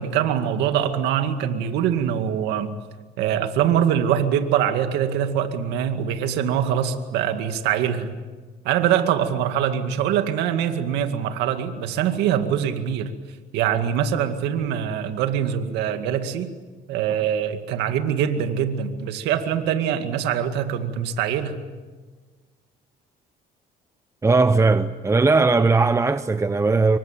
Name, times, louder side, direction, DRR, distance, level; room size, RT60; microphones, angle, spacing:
voice 1, 0.0-2.7 3.2-8.1 8.6-13.1 13.5-16.5 16.9-21.6, right 9 dB, 90° right, 2.2 m, -23 dB
voice 2, 24.2-27.0, right 3 dB, 15° right, 0.8 m, -18 dB
26.5 x 24.0 x 9.0 m
cardioid pair, 110°, 17 cm